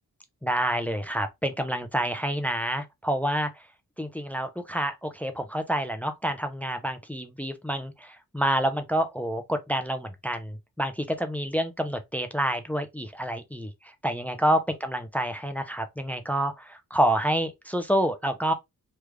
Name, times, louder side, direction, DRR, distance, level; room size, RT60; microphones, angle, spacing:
voice 1, 0.4-3.7 4.0-18.5, right 1 dB, 5° left, 0.5 m, -28 dB
3.3 x 2.3 x 3.1 m
cardioid pair, 75°, 37 cm